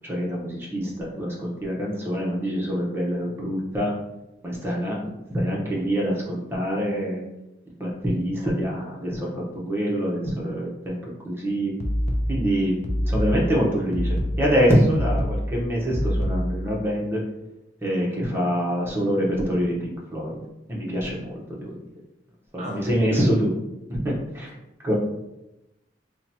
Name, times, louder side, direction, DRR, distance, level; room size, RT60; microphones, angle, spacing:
voice 1, 0.0-3.9 4.4-5.0 5.3-7.2 7.8-9.3 9.6-11.0 11.2-11.7 12.3-12.8 13.1-17.2 17.8-20.4 20.7-21.8 22.5-23.5 23.9-24.5 24.8-25.0, equal, 15° right, -4 dB, 0.7 m, -25 dB
sound 1, 11.8-16.8, equal, 40° left, 0.4 m, -26 dB
voice 2, 22.6-23.3, right 1 dB, 35° right, 0 dB, 0.4 m, -37 dB
2.8 x 2.2 x 4.0 m, 0.93 s
head